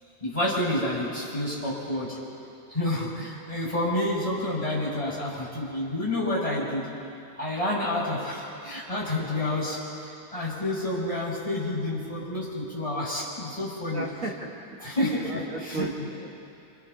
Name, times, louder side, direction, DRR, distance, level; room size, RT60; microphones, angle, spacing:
voice 1, 0.2-2.2 2.7-6.9 7.4-14.1 14.8-15.9, left 1 dB, 10° left, -6 dB, 5.6 m, -29 dB
voice 2, 13.9-14.9 15.3-16.3, right 2 dB, 40° right, -2 dB, 1.1 m, -36 dB
29.5 x 26.0 x 4.1 m, 2.6 s
omnidirectional pair, 4.5 m